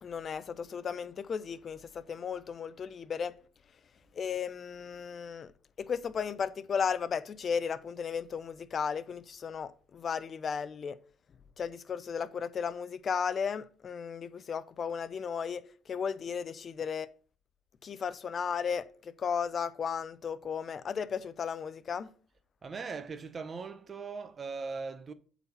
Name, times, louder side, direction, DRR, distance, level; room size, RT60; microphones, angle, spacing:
voice 1, 0.0-3.3 4.1-5.5 5.8-11.0 11.6-17.1 17.8-22.1, left 6 dB, 45° left, 0.6 m, -35 dB
voice 2, 22.6-25.1, right 4 dB, 35° right, 0.9 m, -39 dB
8.3 x 4.2 x 5.8 m
cardioid pair, 95°, 0 cm